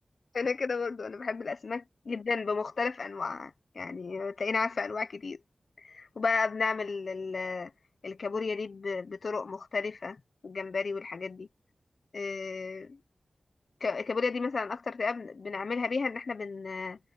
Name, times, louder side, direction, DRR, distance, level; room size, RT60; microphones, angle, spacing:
voice 1, 0.3-5.4 5.8-7.7 8.0-10.2 10.4-11.5 12.1-13.0 13.8-17.0, left 4 dB, 75° left, 1.0 m, -33 dB
wide cardioid pair, 60°, 0 cm